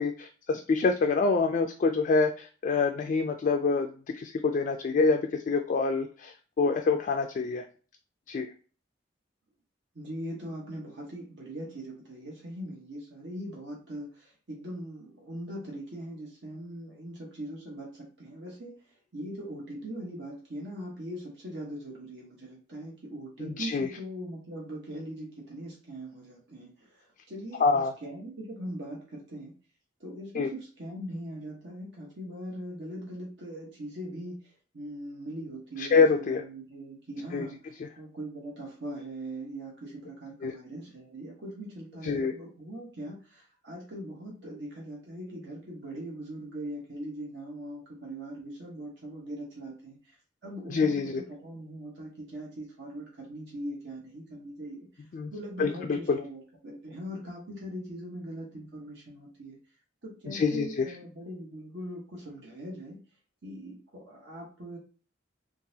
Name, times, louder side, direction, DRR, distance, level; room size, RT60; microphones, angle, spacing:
voice 1, 0.0-3.9 4.1-7.6 8.3-8.5 23.4-23.9 27.6-27.9 30.3-30.5 35.8-36.4 37.3-37.5 40.4-40.5 42.0-42.3 50.7-51.2 55.1-55.3 55.6-56.2 60.3-60.9, left 4 dB, 45° left, 4 dB, 0.3 m, -26 dB
voice 2, 9.9-18.7 19.1-29.5 30.0-37.6 38.0-50.1 50.4-54.9 55.3-59.6 60.0-63.0 63.4-64.8, right 1 dB, 70° right, -3 dB, 1.0 m, -41 dB
3.8 x 2.4 x 2.7 m, 0.40 s
head